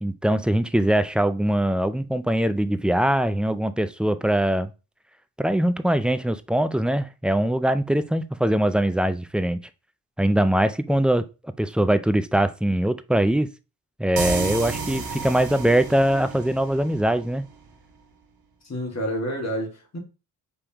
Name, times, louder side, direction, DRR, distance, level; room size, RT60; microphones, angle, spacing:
voice 1, 0.0-4.7 5.4-9.6 10.2-11.3 11.6-13.5 14.0-17.4, right 1 dB, 5° right, 0.4 m, -22 dB
sound 1, 14.2-17.7, right 4 dB, 65° right, 1.3 m, -32 dB
voice 2, 18.6-20.0, equal, 40° left, 2.3 m, -29 dB
5.1 x 3.5 x 2.9 m
cardioid pair, 65°, 39 cm